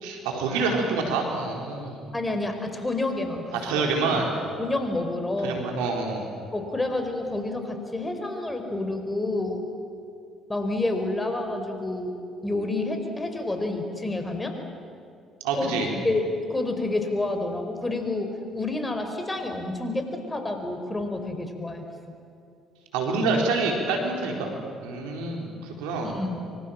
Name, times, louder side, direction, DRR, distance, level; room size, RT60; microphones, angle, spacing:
voice 1, 0.0-2.0 3.5-4.3 5.4-6.3 15.4-15.9 22.9-24.5 24.8-25.5 25.8-26.1, right 3 dB, 80° right, 1 dB, 4.1 m, -26 dB
voice 2, 2.1-4.2 4.6-5.7 6.5-9.7 10.5-12.1 12.4-14.6 15.6-21.9 26.0-26.4, left 2 dB, 20° left, 6 dB, 4.7 m, -29 dB
25.0 x 25.0 x 7.6 m, 2.5 s
hypercardioid pair, 55°, 0 cm